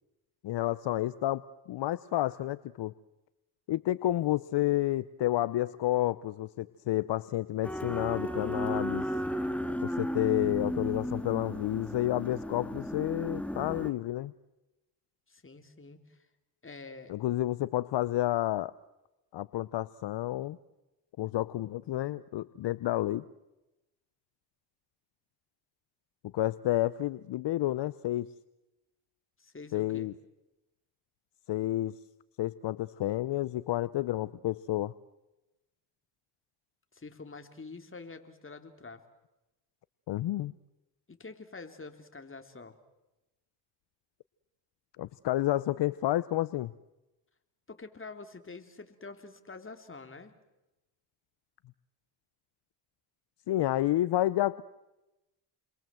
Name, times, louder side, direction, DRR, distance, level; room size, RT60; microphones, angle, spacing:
voice 1, 0.4-2.9 3.7-9.1 9.8-14.3 17.1-18.7 19.3-20.6 21.2-23.2 26.3-28.3 29.7-30.1 31.5-32.0 32.4-34.9 40.1-40.5 45.0-46.7 53.5-54.6, left 15 dB, 60° left, 17 dB, 0.8 m, -30 dB
sound 1, 7.6-13.9, equal, 5° left, 2.2 m, -34 dB
voice 2, 15.3-16.3 16.6-17.1 29.4-30.1 36.9-39.0 41.1-42.8 47.7-50.3, left 3 dB, 25° left, 7 dB, 3.6 m, -47 dB
30.0 x 22.5 x 7.8 m, 0.98 s
supercardioid pair, 65°, 46 cm